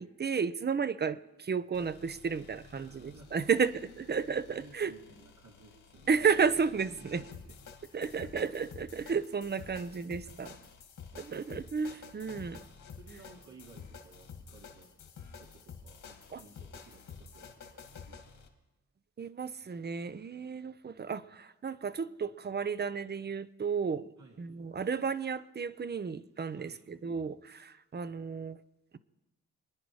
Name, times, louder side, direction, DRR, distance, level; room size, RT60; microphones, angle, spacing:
voice 1, 0.0-4.9 6.1-7.2 7.9-10.6 11.2-12.6 16.3-16.4 19.2-24.1 24.4-28.6, right 6 dB, 35° right, 14 dB, 0.7 m, -33 dB
sound 1, 1.7-18.5, left 6 dB, 85° left, 2.3 m, -51 dB
voice 2, 2.7-3.3 4.5-6.1 7.0-7.5 7.9-8.5 10.2-10.6 12.3-12.6 12.8-14.9 15.4-18.5 24.2-24.5 26.5-26.9, right 3 dB, 70° right, -4 dB, 2.8 m, -57 dB
27.0 x 10.5 x 4.8 m, 1.1 s
cardioid pair, 95°, 30 cm